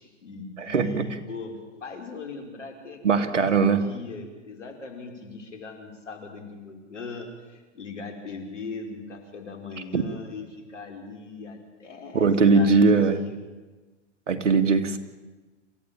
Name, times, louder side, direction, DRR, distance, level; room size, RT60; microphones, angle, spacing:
voice 1, 0.0-13.4, left 4 dB, 85° left, 5 dB, 5.2 m, -39 dB
voice 2, 0.6-1.1 3.0-3.9 9.9-10.0 12.1-13.2 14.3-15.0, right 4 dB, 90° right, 8 dB, 2.4 m, -20 dB
28.0 x 16.0 x 9.1 m, 1.2 s
hypercardioid pair, 115°, 36 cm